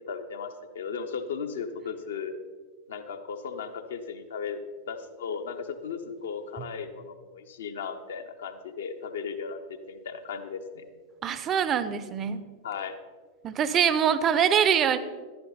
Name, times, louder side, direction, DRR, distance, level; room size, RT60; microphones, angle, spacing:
voice 1, 0.1-2.3 2.9-4.6 4.9-10.8 12.6-13.0, left 6 dB, 65° left, 7 dB, 0.9 m, -36 dB
voice 2, 11.2-12.4 13.4-15.0, right 8 dB, 30° right, 14 dB, 0.7 m, -24 dB
11.5 x 11.5 x 4.0 m, 1.5 s
figure-of-eight pair, 90°, 0 cm